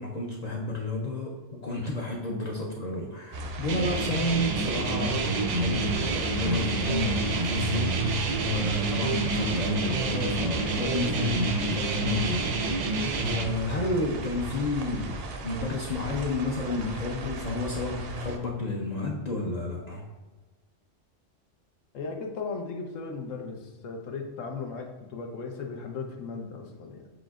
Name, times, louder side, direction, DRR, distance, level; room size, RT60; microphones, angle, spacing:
voice 1, 0.0-8.0 8.4-12.8 13.2-20.0, left 2 dB, 55° left, -1 dB, 0.4 m, -31 dB
sound 1, 3.3-18.4, right 3 dB, 60° right, 0.7 m, -36 dB
sound 2, 3.7-13.4, right 3 dB, 90° right, 0.3 m, -28 dB
voice 2, 21.9-27.1, left 4 dB, 85° left, 3 dB, 1.1 m, -37 dB
7.7 x 2.6 x 2.4 m, 1.3 s
omnidirectional pair, 1.3 m